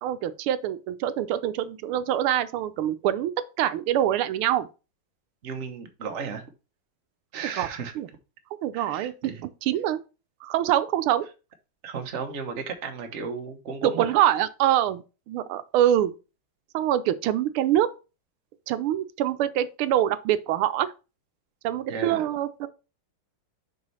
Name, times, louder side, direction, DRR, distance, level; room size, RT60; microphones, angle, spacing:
voice 1, 0.0-4.7 7.6-7.7 8.0-8.1 8.6-9.1 9.6-10.0 10.4-11.3 13.8-16.1 16.7-17.9 18.7-20.9 21.6-22.7, right 11 dB, 85° right, 1.5 m, -24 dB
voice 2, 5.4-6.4 7.3-7.9 8.7-9.4 11.8-14.1 21.9-22.3, right 5 dB, 45° right, 1.1 m, -34 dB
5.4 x 4.8 x 5.5 m
omnidirectional pair, 2.3 m